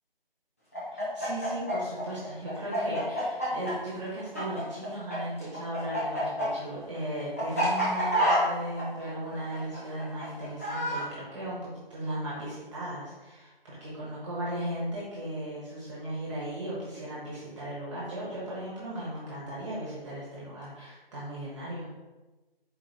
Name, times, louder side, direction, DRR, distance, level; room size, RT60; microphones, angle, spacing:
Chicken rooster, 0.7-5.2 5.4-11.0, right 1 dB, 15° left, 0.5 m, -28 dB
voice 1, 0.9-21.9, right 1 dB, 30° right, -8 dB, 1.3 m, -37 dB
4.5 x 3.9 x 2.7 m, 1.2 s
figure-of-eight pair, 155°, 30 cm